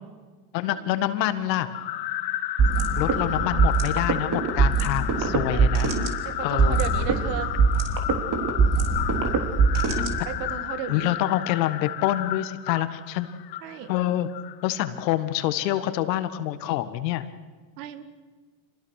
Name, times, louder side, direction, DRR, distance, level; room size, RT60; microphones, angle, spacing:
voice 1, 0.5-1.7 3.0-5.9 6.4-6.8 10.9-13.3 13.9-14.3 14.6-17.3, left 13 dB, 80° left, 11 dB, 1.7 m, -26 dB
sound 1, 1.7-15.1, left 14 dB, 50° left, 1.4 m, -32 dB
sound 2, 2.6-10.6, right 4 dB, 40° right, 3.4 m, -23 dB
voice 2, 3.1-3.6 5.5-5.7 6.2-7.5 10.3-11.2 13.6-13.9 17.8-18.0, right 9 dB, 75° right, 11 dB, 2.1 m, -35 dB
26.5 x 20.0 x 6.5 m, 1.4 s
supercardioid pair, 95°, 49 cm